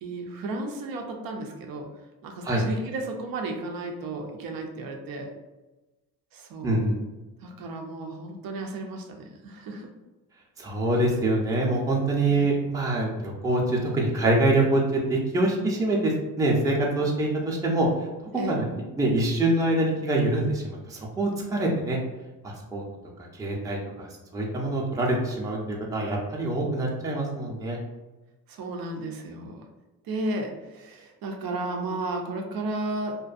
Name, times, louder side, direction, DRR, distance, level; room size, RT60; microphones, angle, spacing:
voice 1, 0.0-1.9 2.2-5.3 6.3-6.8 7.4-9.9 12.3-12.5 18.4-18.6 28.5-29.6 30.0-33.2, right 2 dB, 85° right, 3 dB, 0.5 m, -33 dB
voice 2, 6.6-7.0 10.6-17.9 18.5-18.7 19.0-22.0 22.4-22.8 23.3-27.8, right 2 dB, 10° right, -2 dB, 0.4 m, -25 dB
2.5 x 2.2 x 2.4 m, 1.1 s
cardioid pair, 80°, 34 cm